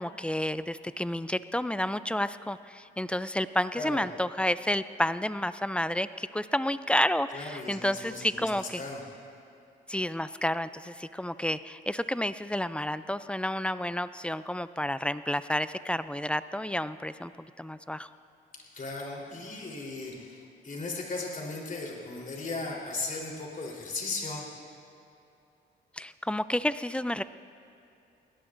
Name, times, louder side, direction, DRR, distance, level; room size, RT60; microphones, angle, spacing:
voice 1, 0.0-8.8 9.9-18.1 26.0-27.2, left 1 dB, 5° left, 14 dB, 0.4 m, -30 dB
voice 2, 7.3-9.0 18.7-24.5, left 3 dB, 45° left, -2 dB, 3.7 m, -37 dB
22.0 x 17.5 x 2.6 m, 2.7 s
cardioid pair, 90°, 20 cm